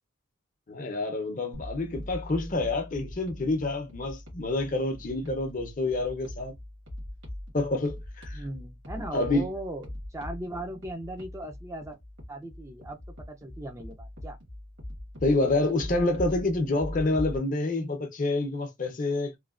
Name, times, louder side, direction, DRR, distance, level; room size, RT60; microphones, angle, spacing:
voice 1, 0.7-6.5 7.5-8.4 9.1-9.4 15.2-19.4, left 2 dB, 45° left, 0.6 m, -28 dB
sound 1, 1.5-17.4, left 1 dB, 70° right, 1.4 m, -41 dB
voice 2, 8.3-12.0 12.3-13.0 13.3-14.4, right 1 dB, 15° right, 0.4 m, -38 dB
3.1 x 2.1 x 2.3 m
head